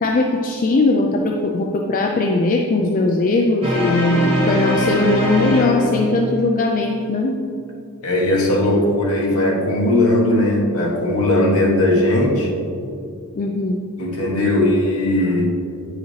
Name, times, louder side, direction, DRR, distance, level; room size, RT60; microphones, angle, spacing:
voice 1, 0.0-7.4 13.3-13.8, left 2 dB, 40° left, 1 dB, 0.4 m, -19 dB
sound 1, 3.6-6.3, left 1 dB, 25° right, 1.4 m, -21 dB
voice 2, 8.0-12.5 14.0-15.6, left 1 dB, 75° left, -2 dB, 1.3 m, -18 dB
9.0 x 4.8 x 3.2 m, 2.5 s
head